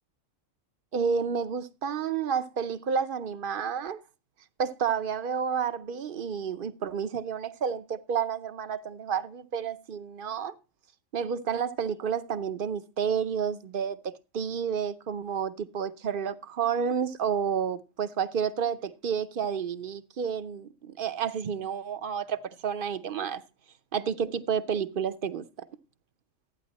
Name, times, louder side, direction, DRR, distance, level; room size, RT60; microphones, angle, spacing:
voice 1, 0.9-4.0 4.6-10.5 11.1-23.4 23.9-25.7, right 7 dB, 50° right, 0.8 m, -30 dB
13.5 x 9.6 x 4.1 m
omnidirectional pair, 1.3 m